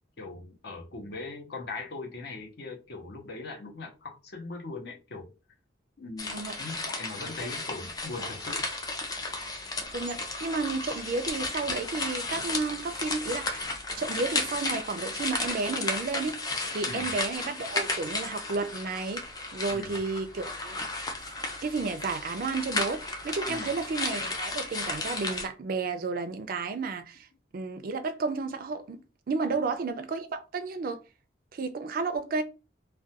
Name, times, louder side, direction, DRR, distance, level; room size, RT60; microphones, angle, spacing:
voice 1, 0.2-5.3 6.0-8.7 16.8-17.1 19.7-20.0 23.5-23.7 29.5-29.7, left 3 dB, 55° left, 0.7 m, -40 dB
sound 1, 6.2-25.5, left 2 dB, 20° left, 0.3 m, -34 dB
voice 2, 9.9-13.7 14.0-20.8 21.6-27.3 27.5-29.0 29.3-31.0 31.5-32.4, right 4 dB, 50° right, 0.4 m, -32 dB
2.3 x 2.2 x 2.7 m
head